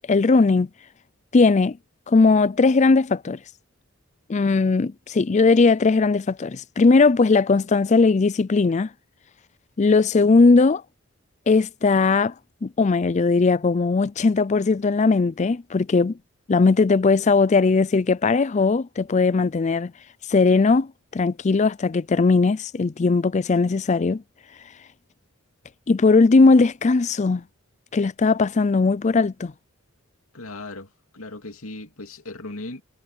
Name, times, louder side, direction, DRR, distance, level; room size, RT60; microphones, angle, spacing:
voice 1, 0.1-0.7 1.3-1.8 2.1-3.4 4.3-8.9 9.8-10.8 11.5-12.3 12.6-16.1 16.5-19.9 20.3-24.2 25.9-27.4 27.9-29.5, left 4 dB, 35° left, 0.4 m, -18 dB
voice 2, 30.3-32.8, left 2 dB, 80° left, 2.6 m, -37 dB
head